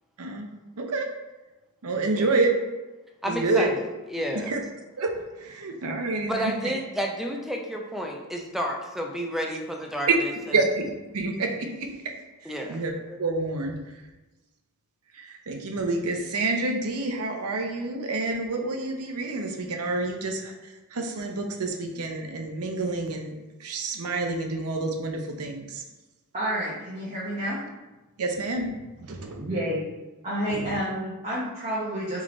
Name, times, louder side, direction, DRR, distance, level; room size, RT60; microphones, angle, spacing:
voice 1, 0.8-1.1 1.8-2.5 3.3-3.7 4.5-4.6 5.0-5.1 5.4-6.5 10.5-10.8 11.1-11.9 12.4-12.9 13.2-13.8 15.1-20.5 20.9-25.8 28.2-28.7 29.0-29.5 30.5-30.8, right 3 dB, 80° right, 3 dB, 0.7 m, -28 dB
voice 2, 2.1-2.4 3.2-4.5 6.3-10.6 12.4-12.8 13.1-13.2, equal, ahead, 1 dB, 0.4 m, -31 dB
voice 3, 26.3-27.7 29.4-29.8 30.2-32.2, equal, 30° right, -8 dB, 0.9 m, -29 dB
3.7 x 3.2 x 3.8 m, 1.1 s
head